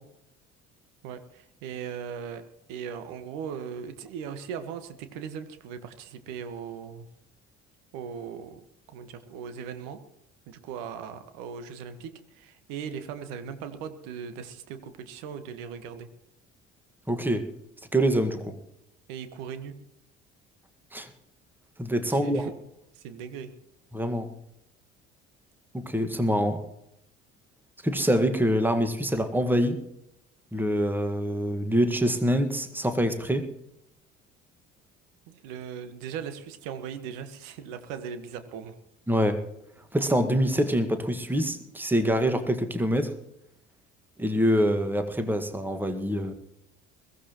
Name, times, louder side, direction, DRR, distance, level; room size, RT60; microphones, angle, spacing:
voice 1, 1.0-2.4 2.7-7.1 7.9-8.6 8.9-10.0 10.5-16.1 19.1-19.7 22.1-22.5 22.9-23.5 35.3-38.7, right 7 dB, 65° right, 10 dB, 1.6 m, -38 dB
voice 2, 17.1-17.5 17.9-18.6 20.9-21.1 21.8-22.5 23.9-24.3 25.7-26.6 27.8-29.8 30.5-33.5 39.1-39.4 39.9-43.1 44.2-46.3, equal, 5° right, 8 dB, 1.8 m, -25 dB
22.0 x 16.0 x 3.1 m, 0.81 s
figure-of-eight pair, 55°, 35 cm